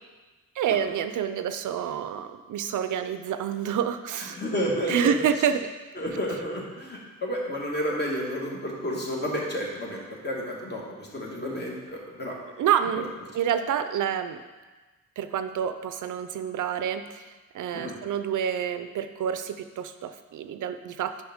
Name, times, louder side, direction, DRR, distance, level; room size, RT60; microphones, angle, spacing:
voice 1, 0.6-4.4 4.9-5.6 12.6-13.1 13.3-14.4 15.2-21.2, right 8 dB, 80° right, 10 dB, 0.5 m, -28 dB
voice 2, 4.2-5.2 5.9-12.4 17.7-18.0, equal, 35° left, -2 dB, 1.6 m, -31 dB
8.7 x 5.5 x 3.6 m, 1.3 s
wide cardioid pair, 140°, 31 cm